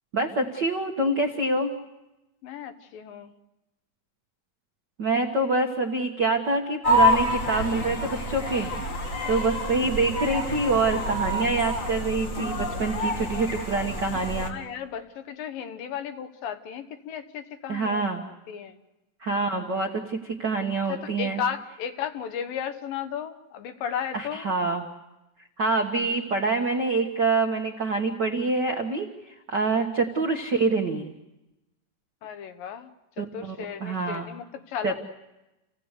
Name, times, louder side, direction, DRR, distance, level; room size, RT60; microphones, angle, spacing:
voice 1, 0.1-1.8 5.0-8.7 9.2-14.6 17.7-18.2 19.2-21.4 24.1-24.8 25.6-31.1 33.2-34.3 34.8-34.9, right 3 dB, 60° right, 2 dB, 1.1 m, -26 dB
voice 2, 2.4-3.3 14.4-18.8 20.9-24.5 29.7-29.9 32.2-32.9 33.2-34.9, left 8 dB, 75° left, 10 dB, 2.8 m, -35 dB
sound 1, 6.8-14.5, left 1 dB, 30° left, 1.5 m, -27 dB
29.0 x 16.5 x 8.2 m, 1.0 s
omnidirectional pair, 4.1 m